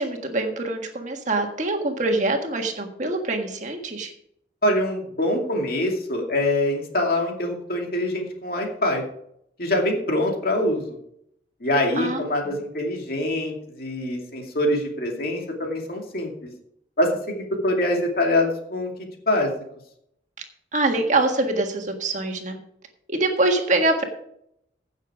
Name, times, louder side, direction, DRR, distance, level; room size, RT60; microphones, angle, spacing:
voice 1, 0.0-4.1 11.9-12.6 20.7-22.6 23.1-24.1, right 2 dB, 40° right, 4 dB, 1.6 m, -24 dB
voice 2, 4.6-9.0 9.6-11.0 11.6-16.3 17.0-18.9 19.3-19.5, left 1 dB, 55° left, 1 dB, 2.5 m, -24 dB
16.0 x 6.7 x 4.9 m, 0.73 s
head